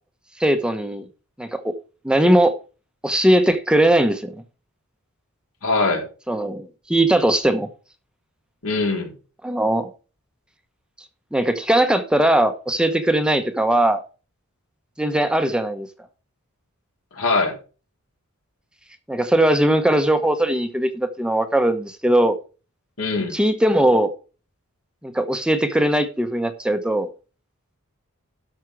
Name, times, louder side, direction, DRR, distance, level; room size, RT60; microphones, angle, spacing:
voice 1, 0.4-1.0 1.4-1.7 2.0-2.5 3.0-4.3 6.3-7.7 9.4-9.9 11.3-14.0 15.0-15.9 19.1-22.4 23.3-24.1 25.0-27.1, right 1 dB, 5° right, 8 dB, 0.9 m, -19 dB
voice 2, 5.6-6.0 8.6-9.1 17.1-17.6 23.0-23.4, left 3 dB, 70° left, 1 dB, 4.1 m, -22 dB
12.5 x 6.2 x 4.7 m, 0.34 s
head